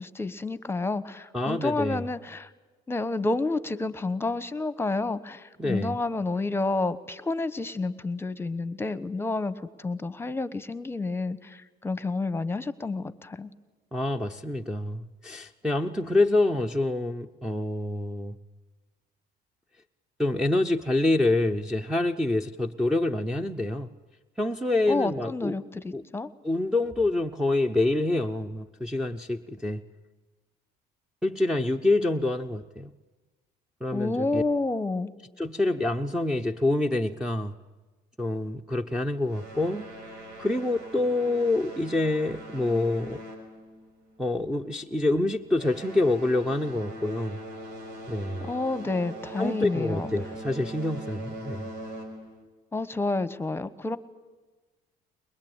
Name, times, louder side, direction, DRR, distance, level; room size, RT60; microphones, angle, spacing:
voice 1, 0.0-2.5 2.9-13.5 24.9-26.3 33.9-35.1 48.4-50.1 52.7-54.0, left 3 dB, 15° left, 14 dB, 1.1 m, -29 dB
voice 2, 1.3-2.0 5.6-6.0 13.9-18.4 20.2-23.9 24.4-25.6 25.9-26.0 26.4-29.8 31.2-32.9 33.8-34.4 35.4-37.5 38.2-39.9 40.4-43.2 44.2-47.4 48.1-48.5 49.4-51.7, left 2 dB, 5° right, 0 dB, 0.8 m, -26 dB
sound 1, 39.3-44.2 44.5-44.8 45.4-52.4, right 1 dB, 85° right, 5.6 m, -42 dB
22.5 x 22.0 x 8.9 m, 1.2 s
cardioid pair, 110°, 17 cm